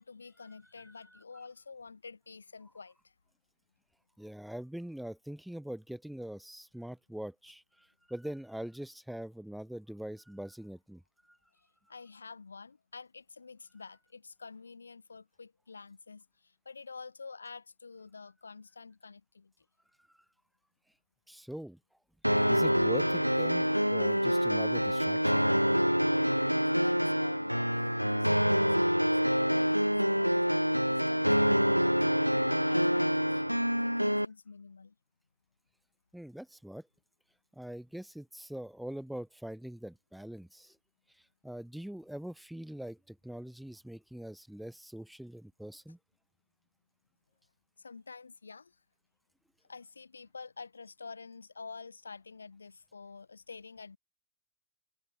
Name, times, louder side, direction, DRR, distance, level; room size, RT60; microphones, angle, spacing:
voice 1, 0.0-3.1 11.9-19.7 26.5-34.9 47.8-48.8 49.7-54.0, left 4 dB, 75° left, 3.8 m, -49 dB
voice 2, 4.2-11.0 11.3-11.4 21.3-21.8 22.5-25.5 36.1-36.8 37.5-40.7 41.4-46.0, right 1 dB, ahead, 3.4 m, -43 dB
sound 1, 22.2-34.3, equal, 90° right, 0.3 m, -26 dB
figure-of-eight pair, 90°, 0 cm